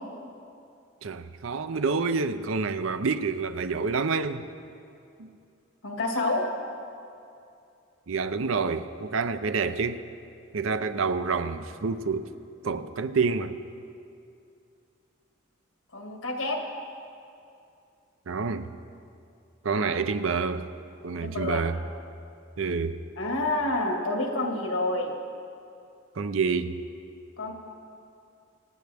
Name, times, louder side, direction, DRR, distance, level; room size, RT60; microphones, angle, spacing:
voice 1, 1.0-4.5 5.2-5.3 8.1-10.0 10.5-12.3 12.6-13.6 18.3-18.7 19.6-20.7 21.0-21.8 22.6-23.0 26.2-26.8, right 4 dB, 80° right, 0.6 m, -28 dB
voice 2, 5.8-6.5 15.9-16.6 19.7-19.9 21.2-21.6 23.2-25.2 27.4-27.5, left 2 dB, 90° left, 1.9 m, -28 dB
25.0 x 9.3 x 3.5 m
head